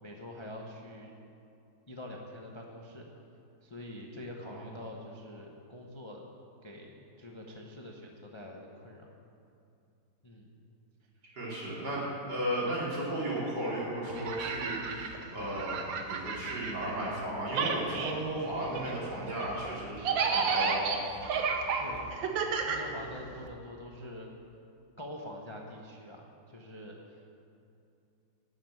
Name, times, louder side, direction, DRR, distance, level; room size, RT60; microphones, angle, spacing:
voice 1, 0.0-1.1 1.9-3.1 3.6-6.2 6.6-9.1 10.2-10.5 11.5-11.9 21.8-22.1 22.7-24.3 25.0-27.4, left 1 dB, 25° left, 0 dB, 0.7 m, -45 dB
voice 2, 11.3-15.8 16.1-21.2, right 1 dB, 60° right, -6 dB, 4.0 m, -35 dB
sound 1, 14.1-17.2 17.5-23.5, right 5 dB, 85° right, 1.7 m, -32 dB
12.0 x 7.7 x 9.0 m, 2.6 s
omnidirectional pair, 2.0 m